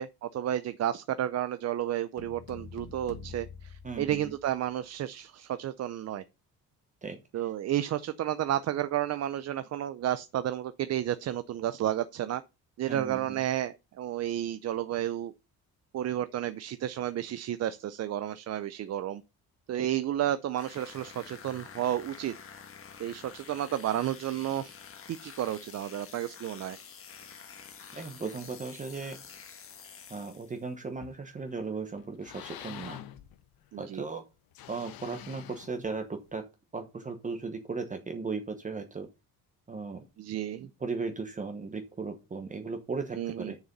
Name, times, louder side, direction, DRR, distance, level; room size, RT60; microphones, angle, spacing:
voice 1, 0.0-6.2 7.3-12.4 12.8-15.3 15.9-19.2 19.7-22.3 23.0-24.7 25.1-26.8 28.7-28.8 33.7-34.0 40.2-40.7 43.1-43.5, right 12 dB, 45° right, 0.5 m, -32 dB
sound 1, 2.2-4.7, left 5 dB, 85° left, 2.5 m, -46 dB
voice 2, 3.8-4.3 7.0-7.2 12.9-13.4 19.7-19.9 27.9-29.2 30.1-33.0 33.8-34.2 34.7-36.4 36.7-39.1 39.7-40.0 40.6-43.6, right 4 dB, 20° right, 1.1 m, -37 dB
sound 2, 20.5-30.7, left 7 dB, 35° left, 1.4 m, -49 dB
sound 3, 31.0-31.6 32.0-33.8 34.5-36.3, left 11 dB, 70° left, 1.2 m, -46 dB
6.9 x 6.8 x 5.3 m
cardioid pair, 140°, 37 cm